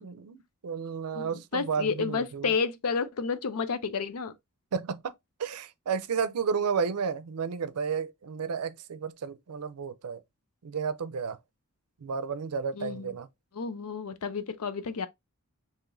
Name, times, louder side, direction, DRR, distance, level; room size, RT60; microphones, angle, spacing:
voice 1, 0.0-2.5 4.7-5.1 5.4-10.2 10.6-11.4 12.0-13.3, right 6 dB, 85° right, 0.5 m, -32 dB
voice 2, 1.1-4.3 12.7-13.2 13.5-15.1, left 5 dB, 80° left, 0.6 m, -31 dB
4.7 x 2.9 x 2.5 m
head